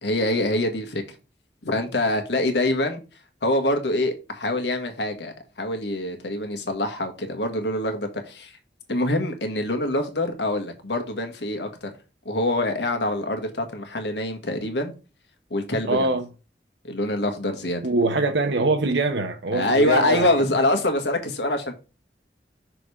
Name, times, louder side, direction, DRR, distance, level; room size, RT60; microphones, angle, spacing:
voice 1, 0.0-1.0 1.6-3.0 3.4-8.6 8.9-11.9 12.2-14.9 15.5-16.1 16.8-17.8 19.5-21.7, left 1 dB, 85° left, 1.5 m, -25 dB
voice 2, 15.9-16.2 17.8-20.3, right 2 dB, 90° right, 0.8 m, -23 dB
6.1 x 5.1 x 4.9 m
head